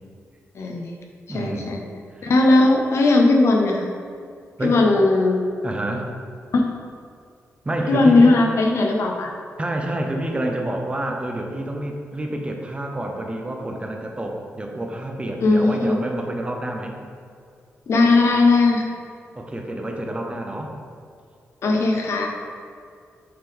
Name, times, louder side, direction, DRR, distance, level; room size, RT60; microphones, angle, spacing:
voice 1, 0.5-0.9 1.3-1.8 2.2-3.9 4.6-5.4 6.5-6.6 7.9-9.3 15.4-16.0 17.9-18.8 21.6-22.3, left 2 dB, 70° left, 2 dB, 0.8 m, -17 dB
voice 2, 1.3-1.7 2.1-2.3 4.6-4.8 5.6-6.1 7.6-8.3 9.6-17.0 19.3-20.8, right 1 dB, 25° right, 2 dB, 0.9 m, -28 dB
7.8 x 4.1 x 3.6 m, 2.3 s
cardioid pair, 70°, 5 cm